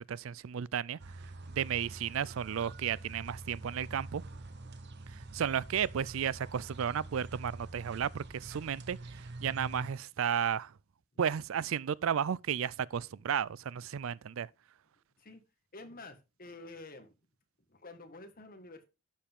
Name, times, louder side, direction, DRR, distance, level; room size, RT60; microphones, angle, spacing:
voice 1, 0.1-1.0 1.5-4.2 5.3-9.0 9.4-10.7 11.2-14.5, right 8 dB, 70° right, 0.4 m, -33 dB
sound 1, 1.0-9.9, right 2 dB, 55° right, 1.1 m, -46 dB
voice 2, 15.7-17.1 17.7-18.8, left 2 dB, 45° left, 1.8 m, -49 dB
11.5 x 7.3 x 3.6 m
head